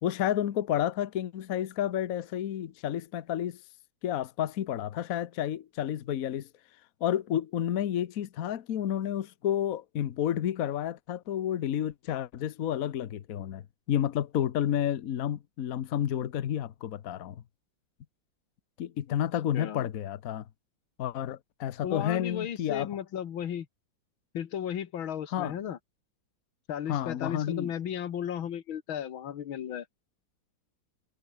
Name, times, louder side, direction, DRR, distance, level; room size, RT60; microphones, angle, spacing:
voice 1, 0.0-3.6 4.0-6.5 7.0-13.6 13.9-17.4 18.8-20.4 21.0-22.9 25.3-25.5 26.9-27.7, left 10 dB, 55° left, 1.2 m, -30 dB
voice 2, 19.5-19.8 21.8-23.7 24.3-25.8 26.7-29.9, left 9 dB, 85° left, 2.2 m, -35 dB
omnidirectional pair, 2.1 m